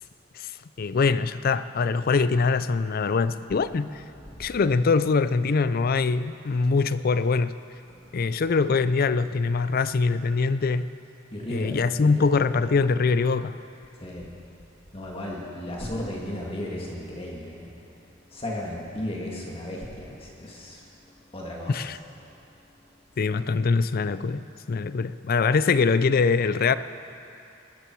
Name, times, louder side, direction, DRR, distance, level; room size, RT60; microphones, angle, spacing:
voice 1, 0.8-4.0 4.4-7.5 8.1-10.9 11.5-13.6 21.7-22.0 23.2-26.8, left 4 dB, 50° left, 14 dB, 0.4 m, -23 dB
voice 2, 4.3-4.6 11.3-12.3 14.0-14.3 14.9-17.7 18.3-20.8 21.3-21.8, left 1 dB, 30° left, -3 dB, 1.9 m, -35 dB
21.0 x 13.5 x 4.6 m, 2.6 s
head